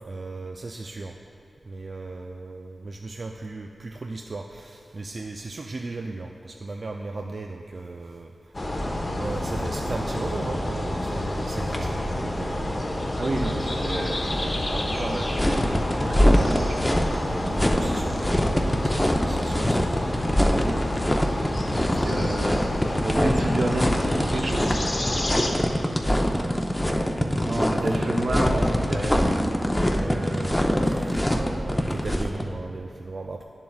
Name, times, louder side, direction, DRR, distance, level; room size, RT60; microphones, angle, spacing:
voice 1, 0.1-1.2 1.6-8.7 9.2-12.6 15.4-15.9 17.4-20.2 20.5-20.7 22.1-22.9 26.3-26.6 26.9-28.0 29.8-33.4, right 2 dB, 55° right, 3 dB, 0.3 m, -37 dB
sound 1, 8.5-25.5, left 1 dB, 40° left, 0.9 m, -28 dB
voice 2, 13.2-15.6 15.9-18.0 22.0-22.7 23.0-24.8 27.4-29.2, right 1 dB, 80° right, 0 dB, 0.8 m, -30 dB
sound 2, 15.3-32.4, equal, 15° left, 0.6 m, -24 dB
10.0 x 7.1 x 2.4 m, 2.4 s
cardioid pair, 45°, 0 cm